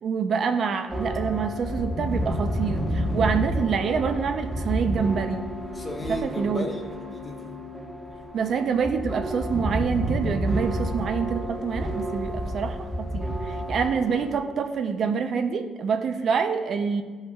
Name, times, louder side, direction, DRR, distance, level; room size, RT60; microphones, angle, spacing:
voice 1, 0.0-5.5 6.1-6.6 8.3-17.0, right 6 dB, 60° right, 7 dB, 0.5 m, -26 dB
sound 1, 0.9-14.4, equal, 10° right, 1.2 m, -30 dB
voice 2, 5.7-7.6 13.8-14.1, left 1 dB, 25° left, 1 dB, 1.3 m, -36 dB
12.5 x 5.4 x 2.3 m, 1.5 s
cardioid pair, 90°, 0 cm